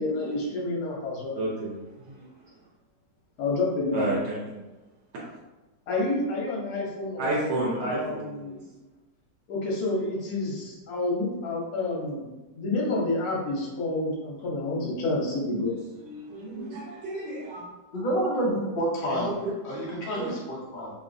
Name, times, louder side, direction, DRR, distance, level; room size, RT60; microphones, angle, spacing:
voice 1, 0.0-1.3 3.4-4.2 5.9-8.6 9.5-12.3 12.5-15.7, left 2 dB, 60° left, -3 dB, 1.2 m, -29 dB
voice 2, 1.3-2.5 3.9-4.6 5.1-5.2 7.2-8.6 16.0-17.6 19.1-19.5 20.1-20.3, right 2 dB, 75° right, -5 dB, 1.2 m, -32 dB
voice 3, 17.9-19.3 19.6-20.9, right 1 dB, 80° left, -5 dB, 0.4 m, -28 dB
3.1 x 2.9 x 2.6 m, 1.1 s
omnidirectional pair, 2.0 m